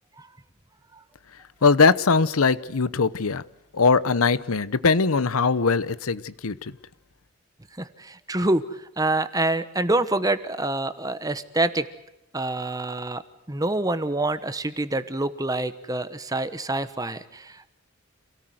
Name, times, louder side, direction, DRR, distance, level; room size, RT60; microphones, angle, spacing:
voice 1, 1.6-3.4 3.7-6.7, left 4 dB, 75° left, 0.8 m, -21 dB
voice 2, 7.8-11.9 12.3-13.2 13.5-17.7, right 2 dB, 15° right, 1.0 m, -26 dB
27.5 x 18.0 x 7.8 m
head